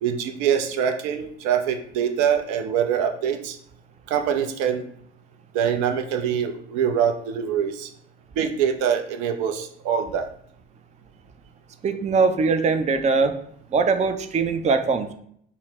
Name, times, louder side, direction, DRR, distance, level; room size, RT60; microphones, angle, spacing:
voice 1, 0.0-3.6 4.1-4.9 5.5-7.9 8.4-10.3, right 8 dB, 60° right, 7 dB, 0.6 m, -24 dB
voice 2, 11.8-13.4 13.7-15.1, right 4 dB, 20° right, 8 dB, 0.4 m, -21 dB
5.7 x 2.0 x 3.5 m, 0.66 s
figure-of-eight pair, 55°, 34 cm